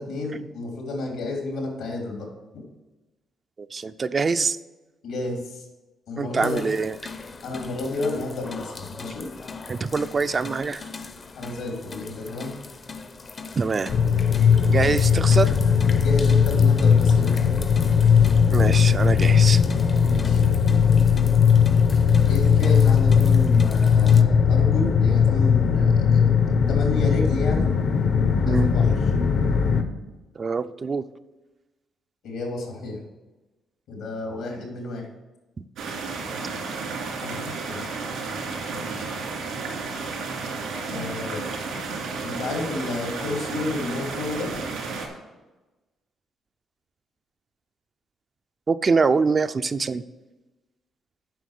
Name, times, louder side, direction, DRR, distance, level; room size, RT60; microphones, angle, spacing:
voice 1, 0.0-2.3 5.0-5.6 6.1-6.7 7.4-9.3 11.3-12.5 16.0-17.3 20.0-20.4 22.3-26.2 26.7-27.7 28.5-28.9 32.2-33.0 33.9-35.1 37.2-37.8 38.7-39.0 40.9-41.5 42.2-44.5, left 2 dB, 85° left, 0 dB, 3.2 m, -31 dB
voice 2, 3.6-4.6 6.2-7.0 9.7-10.8 13.6-13.9 14.7-15.6 18.5-19.6 28.4-28.7 30.4-31.0 48.7-50.0, right 4 dB, 35° right, 11 dB, 0.4 m, -24 dB
sound 1, 6.4-24.2, left 4 dB, 35° left, 0.7 m, -40 dB
sound 2, 13.9-29.8, left 7 dB, 70° left, 1.0 m, -18 dB
sound 3, 35.8-45.1, right 4 dB, 85° right, 2.8 m, -32 dB
9.2 x 5.9 x 6.6 m, 1.1 s
cardioid pair, 90°, 0 cm